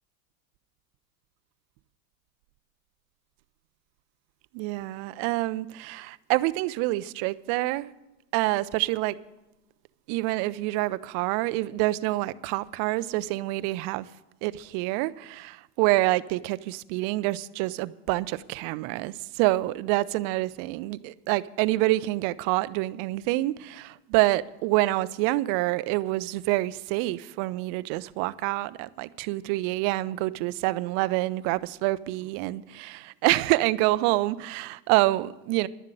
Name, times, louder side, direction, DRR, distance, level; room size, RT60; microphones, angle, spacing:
voice 1, 4.5-7.9 8.3-9.2 10.1-14.1 14.4-35.7, right 19 dB, 40° right, 0.5 m, -27 dB
11.5 x 7.4 x 9.0 m
hypercardioid pair, 115°, 48 cm